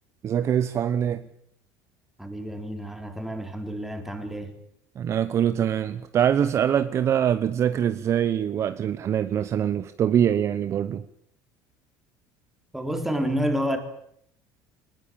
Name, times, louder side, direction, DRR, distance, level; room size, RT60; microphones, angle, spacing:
voice 1, 0.2-1.3 5.0-11.0, right 9 dB, 35° right, 1.0 m, -24 dB
voice 2, 2.2-4.5 12.7-13.8, equal, 5° right, 3.9 m, -29 dB
24.0 x 20.0 x 8.8 m
cardioid pair, 145°, 8 cm